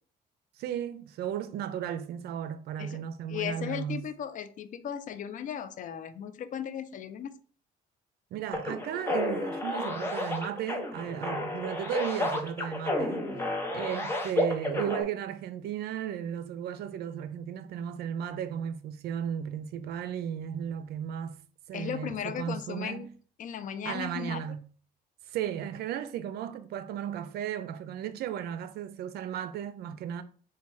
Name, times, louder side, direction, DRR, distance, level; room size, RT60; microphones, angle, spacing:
voice 1, 0.6-4.0 8.3-13.3 13.7-21.4 21.7-23.1 23.8-24.6 25.3-30.2, right 9 dB, 70° right, 0.5 m, -35 dB
voice 2, 2.8-7.3 21.7-23.1 23.4-24.4, left 8 dB, 50° left, 0.5 m, -36 dB
sound 1, 8.5-15.0, left 1 dB, 15° left, 1.0 m, -31 dB
4.2 x 2.3 x 4.6 m
cardioid pair, 110°, 17 cm